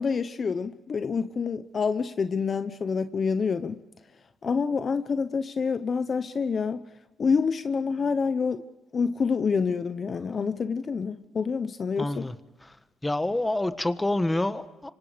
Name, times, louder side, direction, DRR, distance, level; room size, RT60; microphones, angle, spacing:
voice 1, 0.0-3.8 4.4-6.8 7.2-8.6 8.9-12.3, left 5 dB, 45° left, 0.9 m, -27 dB
voice 2, 12.0-12.3 13.0-14.9, left 1 dB, 15° left, 1.4 m, -27 dB
26.0 x 25.5 x 5.1 m
cardioid pair, 90°, 0 cm